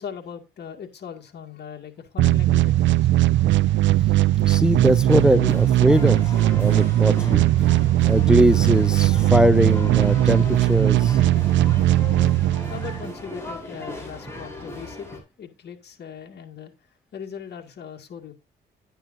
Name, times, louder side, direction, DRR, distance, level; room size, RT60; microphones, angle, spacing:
voice 1, 0.0-3.1 12.7-15.1 15.4-16.7 17.1-18.3, left 7 dB, 55° left, 2.1 m, -39 dB
sound 1, 2.2-13.1, right 14 dB, 70° right, 0.5 m, -19 dB
voice 2, 4.4-6.2 6.5-7.5 8.1-11.2, right 1 dB, 5° right, 0.5 m, -20 dB
sound 2, 5.1-15.2, left 1 dB, 15° left, 4.9 m, -37 dB
11.5 x 9.1 x 2.6 m
cardioid pair, 90°, 20 cm